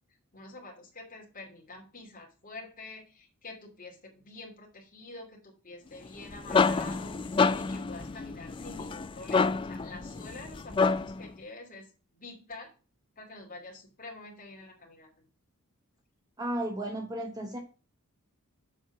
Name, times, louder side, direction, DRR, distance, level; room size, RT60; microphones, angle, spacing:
voice 1, 0.3-11.9 12.1-12.7 13.2-15.1, left 2 dB, 40° left, -1 dB, 2.7 m, -47 dB
sound 1, 6.1-11.3, left 4 dB, 25° left, 0.3 m, -28 dB
voice 2, 16.4-17.6, right 1 dB, 15° right, 4 dB, 1.0 m, -34 dB
7.4 x 4.5 x 6.0 m, 0.35 s
head